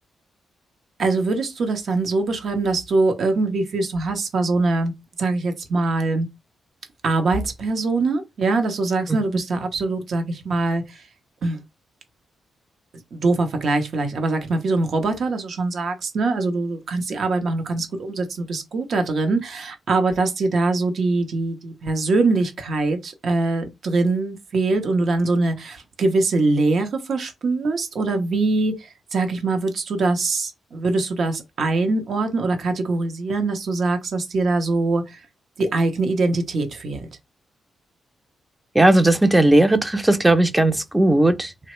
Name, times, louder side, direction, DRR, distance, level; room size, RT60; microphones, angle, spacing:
voice 1, 1.0-4.9 5.2-6.3 7.0-11.0 11.4-11.6 13.1-35.2 35.6-37.1, right 3 dB, 65° right, 0.7 m, -23 dB
voice 2, 38.7-41.5, right 1 dB, 15° right, 0.5 m, -16 dB
2.9 x 2.1 x 3.0 m
supercardioid pair, 55°, 0 cm